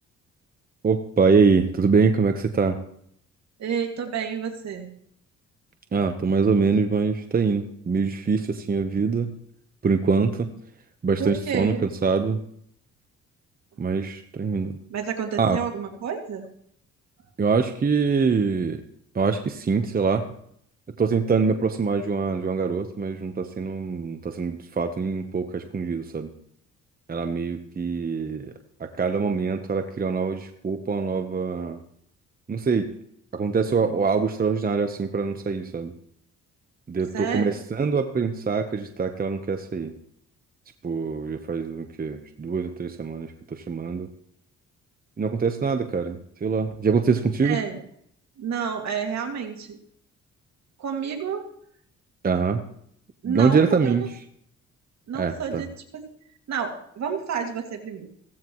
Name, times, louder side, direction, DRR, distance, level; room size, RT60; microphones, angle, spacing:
voice 1, 0.8-2.8 5.9-9.3 9.8-10.5 11.0-11.7 12.0-12.4 13.8-14.7 15.4-15.6 17.4-18.8 19.1-20.3 21.0-26.3 27.1-28.5 28.8-31.8 32.5-32.9 33.3-35.9 36.9-39.9 40.8-44.1 45.2-47.6 52.2-52.6 53.2-54.0 55.1-55.6, right 5 dB, 30° right, 6 dB, 1.0 m, -24 dB
voice 2, 3.6-4.9 11.2-11.9 14.9-16.5 37.1-37.6 47.4-47.8 48.4-49.8 50.8-51.5 53.2-54.1 55.1-56.1 56.5-58.1, right 7 dB, 60° right, 3 dB, 2.5 m, -30 dB
16.0 x 15.0 x 3.1 m, 0.68 s
cardioid pair, 90°, 30 cm